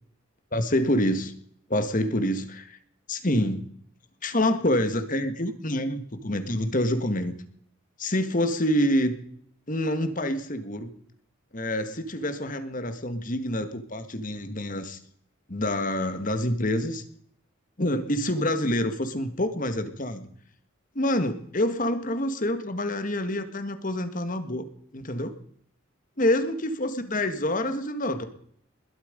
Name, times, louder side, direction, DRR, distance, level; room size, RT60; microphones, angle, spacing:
voice 1, 0.5-1.3 1.7-2.8 3.1-3.6 4.2-7.3 8.0-9.2 9.7-10.9 11.5-15.0 15.5-17.0 17.8-20.3 21.0-25.4 26.2-28.2, left 1 dB, 40° left, 9 dB, 1.8 m, -27 dB
21.5 x 12.5 x 5.2 m, 0.66 s
head